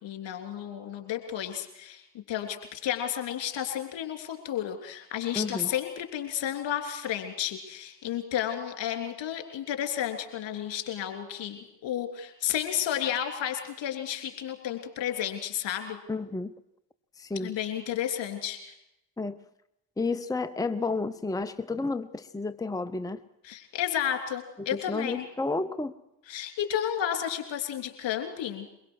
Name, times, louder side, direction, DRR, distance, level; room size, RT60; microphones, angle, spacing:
voice 1, 0.0-2.0 2.3-16.0 17.4-18.7 23.4-25.2 26.3-28.7, left 10 dB, 65° left, 5 dB, 3.3 m, -32 dB
voice 2, 5.3-5.7 16.1-16.5 17.2-17.6 19.2-19.4 20.0-23.2 24.6-25.9, left 3 dB, 10° left, 12 dB, 0.9 m, -31 dB
22.5 x 22.0 x 6.3 m, 0.86 s
hypercardioid pair, 40°, 48 cm